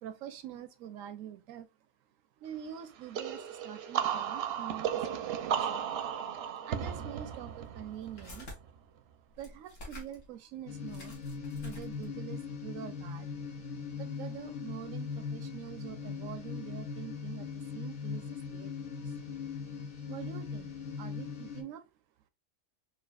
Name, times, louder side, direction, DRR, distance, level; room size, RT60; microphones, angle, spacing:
voice 1, 0.0-1.7 2.4-5.9 6.6-8.5 9.4-11.1 11.6-13.3 14.0-18.3 18.5-19.1 20.1-21.8, right 10 dB, 90° right, 1.0 m, -45 dB
sound 1, 3.1-8.7, right 8 dB, 65° right, 0.7 m, -35 dB
sound 2, 6.7-6.9 7.5-8.6 9.3-10.3 10.6-10.7 10.9-12.2, left 1 dB, 70° left, 1.6 m, -48 dB
sound 3, 10.7-21.6, left 5 dB, 50° left, 0.8 m, -40 dB
4.5 x 2.5 x 2.3 m
omnidirectional pair, 1.3 m